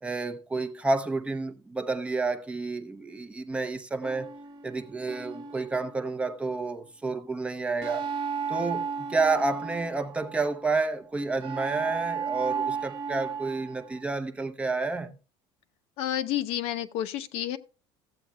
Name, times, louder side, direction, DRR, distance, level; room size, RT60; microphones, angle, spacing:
voice 1, 0.0-4.3 4.6-8.1 8.5-15.1, right 3 dB, 10° right, 0.6 m, -30 dB
sound 1, 4.0-6.5 7.8-10.6 11.4-14.0, right 6 dB, 45° right, 1.1 m, -34 dB
voice 2, 16.0-17.6, left 12 dB, 60° left, 0.8 m, -30 dB
15.5 x 8.3 x 2.3 m
cardioid pair, 170°, 11 cm